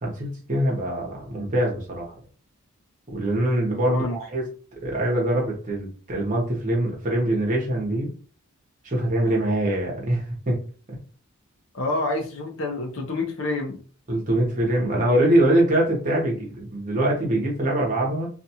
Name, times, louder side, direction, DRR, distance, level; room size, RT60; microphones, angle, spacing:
voice 1, 0.0-2.1 3.1-4.4 4.8-8.1 8.8-10.6 14.1-18.3, right 1 dB, 35° right, -2 dB, 0.9 m, -23 dB
voice 2, 3.9-4.2 11.7-13.8, left 2 dB, 65° left, 2 dB, 0.6 m, -27 dB
2.5 x 2.4 x 2.8 m, 0.40 s
head